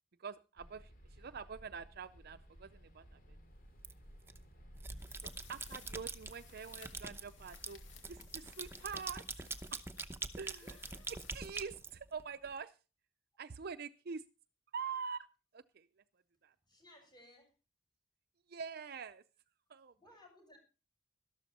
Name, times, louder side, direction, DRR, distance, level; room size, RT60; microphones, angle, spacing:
voice 1, 0.2-3.4 5.2-9.8 10.4-10.8 11.1-12.8 13.4-14.3 14.7-15.3 15.5-15.9 16.4-16.5 18.5-19.2 19.7-19.9, right 6 dB, 55° right, 11 dB, 0.5 m, -45 dB
sound 1, 0.6-8.4, equal, 50° left, 2.6 m, -56 dB
sound 2, 3.8-4.4 4.8-6.3 6.7-12.5, right 3 dB, 15° right, 0.8 m, -44 dB
sound 3, 5.0-12.1, left 6 dB, 75° left, 2.4 m, -60 dB
voice 2, 10.6-11.1 16.6-17.5 20.0-20.6, left 1 dB, 25° left, 2 dB, 7.0 m, -61 dB
13.0 x 12.5 x 4.2 m, 0.33 s
head